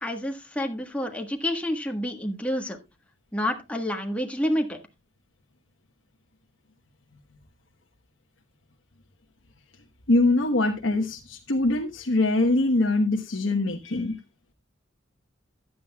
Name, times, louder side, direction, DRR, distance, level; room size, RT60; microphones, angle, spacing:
voice 1, 0.0-2.8 3.3-4.8, left 1 dB, 5° left, 3 dB, 1.4 m, -28 dB
voice 2, 10.1-14.2, left 2 dB, 70° left, 1 dB, 1.2 m, -23 dB
14.5 x 10.0 x 2.3 m, 0.24 s
head